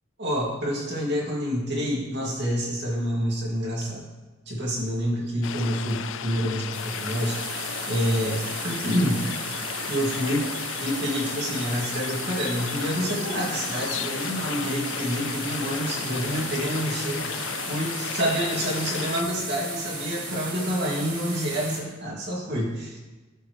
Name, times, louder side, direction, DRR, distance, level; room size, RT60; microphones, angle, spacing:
voice 1, 0.2-4.1 4.5-7.4 7.9-9.3 9.9-10.5 10.8-23.0, equal, 60° right, -3 dB, 2.4 m, -28 dB
sound 1, 5.4-19.2, left 8 dB, 75° left, 0.4 m, -34 dB
sound 2, 6.7-21.8, right 2 dB, 45° right, 2.5 m, -35 dB
12.0 x 5.7 x 3.3 m, 1.2 s
head